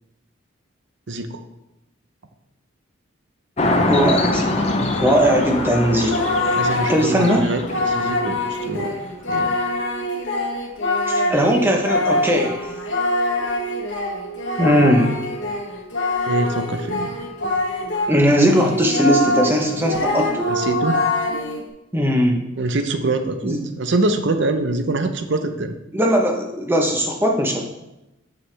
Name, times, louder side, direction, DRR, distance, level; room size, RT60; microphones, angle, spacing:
voice 1, 1.1-1.4 6.5-8.9 9.3-9.6 16.3-17.1 20.5-21.0 22.6-25.7, right 2 dB, 60° right, 8 dB, 0.6 m, -24 dB
sound 1, 3.6-8.7, left 2 dB, 30° left, 0.6 m, -24 dB
voice 2, 3.9-4.7 5.0-6.1 6.7-7.4 11.1-12.7 14.6-15.1 18.1-20.3 21.9-22.4 23.4-23.6 25.9-27.6, equal, 10° right, 1 dB, 0.8 m, -19 dB
Singing, 5.0-18.1 18.4-21.6, left 2 dB, 65° left, 1.1 m, -24 dB
Wind instrument woodwind instrument, 11.4-18.2, right 3 dB, 80° left, 0.7 m, -38 dB
6.9 x 6.6 x 3.3 m, 0.94 s
head